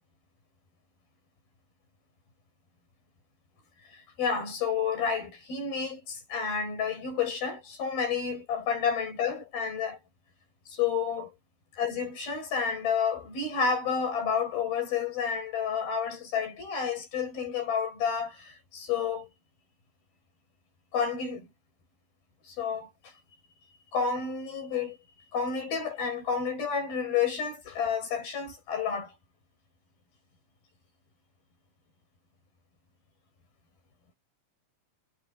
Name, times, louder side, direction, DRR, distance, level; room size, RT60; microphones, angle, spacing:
voice 1, 3.9-10.0 10.7-11.3 11.8-19.3 20.9-21.5 22.4-23.1 23.9-25.0 25.3-29.1, left 6 dB, 75° left, 8.6 m, -30 dB
omnidirectional pair, 4.2 m